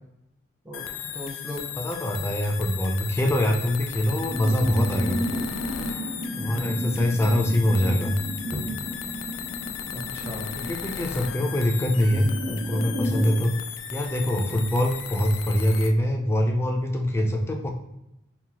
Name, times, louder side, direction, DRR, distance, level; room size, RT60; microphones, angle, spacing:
sound 1, 0.7-15.9, left 9 dB, 85° left, 0.3 m, -36 dB
voice 1, 1.1-1.7 2.2-2.3 6.4-7.0 8.5-8.7 9.9-10.5 14.2-14.4, equal, 10° right, -3 dB, 0.7 m, -34 dB
voice 2, 1.8-5.2 6.4-8.2 10.6-13.5 13.9-17.7, equal, 15° left, 3 dB, 0.4 m, -24 dB
sound 2, 4.0-13.4, equal, 50° right, 1.0 m, -33 dB
3.7 x 2.3 x 2.9 m, 0.87 s
head